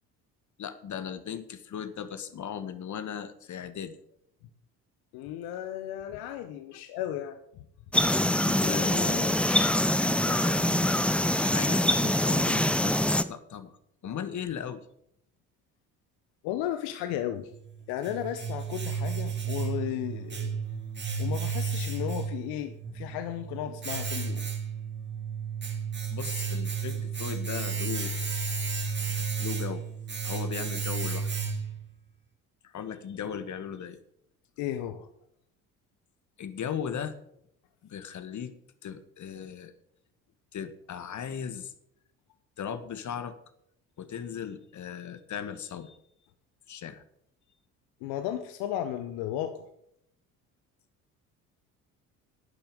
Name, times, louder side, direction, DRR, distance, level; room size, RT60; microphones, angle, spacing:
voice 1, 0.6-4.0 6.7-6.8 8.4-9.5 10.0-12.9 13.3-13.7 14.0-14.8 26.1-28.2 29.4-29.8 30.2-31.3 32.6-34.0 36.4-37.2 37.8-38.5 38.8-39.7 40.5-41.7 42.6-43.3 44.0-46.0 46.7-47.0, left 8 dB, 45° left, 11 dB, 1.7 m, -37 dB
voice 2, 5.1-7.4 16.4-17.5 17.9-20.6 21.2-24.5 34.6-35.1 48.0-49.6, left 11 dB, 60° left, 9 dB, 1.2 m, -34 dB
sound 1, 7.9-13.2, left 1 dB, 5° left, 0.8 m, -24 dB
Domestic sounds home sounds, 17.5-31.9, right 5 dB, 25° right, 2.8 m, -33 dB
11.5 x 10.5 x 5.1 m, 0.72 s
hypercardioid pair, 60°, 43 cm